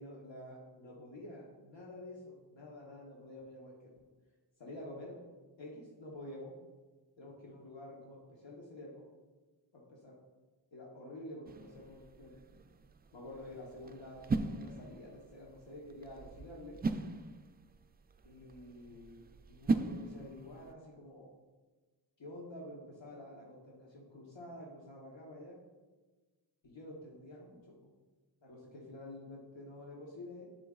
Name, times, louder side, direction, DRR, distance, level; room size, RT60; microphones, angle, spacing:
voice 1, 0.0-4.0 4.6-5.2 5.6-6.6 7.2-9.0 9.7-10.2 10.7-12.4 13.1-16.8 18.2-21.3 22.2-25.6 26.6-27.9 28.4-30.5, left 1 dB, 70° left, -3 dB, 1.2 m, -49 dB
sound 1, 11.5-20.7, right 3 dB, 25° right, 0.3 m, -40 dB
7.0 x 6.8 x 2.4 m, 1.3 s
cardioid pair, 50°, 46 cm